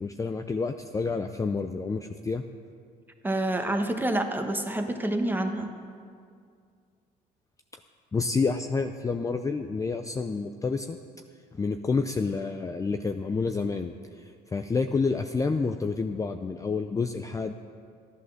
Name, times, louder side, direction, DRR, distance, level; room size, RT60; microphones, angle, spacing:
voice 1, 0.0-2.4 8.1-11.0 11.5-14.2 14.5-17.5, left 4 dB, 20° left, 6 dB, 0.5 m, -29 dB
voice 2, 3.2-5.7, right 1 dB, 10° right, 5 dB, 1.2 m, -27 dB
13.0 x 11.0 x 6.4 m, 2.2 s
cardioid pair, 110°, 17 cm